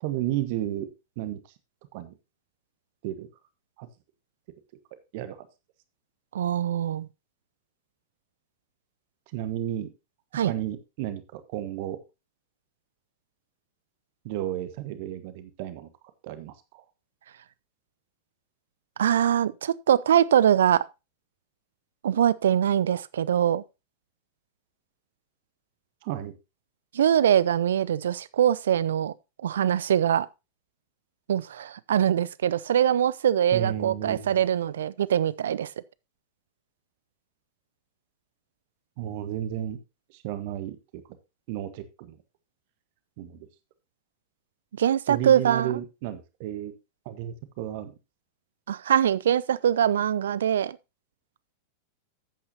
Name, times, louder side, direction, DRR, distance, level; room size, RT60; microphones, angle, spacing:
voice 1, 0.0-0.9 1.2-1.5 1.9-2.1 3.0-3.3 3.8-3.9 5.1-5.5 9.3-9.9 10.4-12.0 14.2-15.9 16.2-16.8 26.0-26.3 33.5-34.4 39.0-39.8 40.1-41.0 41.5-42.2 43.2-43.5 45.1-46.7 47.0-47.9, right 12 dB, 50° right, 1.3 m, -33 dB
voice 2, 6.3-7.1 10.3-10.5 19.0-20.8 22.0-23.6 26.9-29.1 29.4-30.3 31.3-35.7 44.8-45.7 48.7-50.8, right 9 dB, 65° right, 0.4 m, -23 dB
12.0 x 8.7 x 2.9 m
figure-of-eight pair, 90°, 0 cm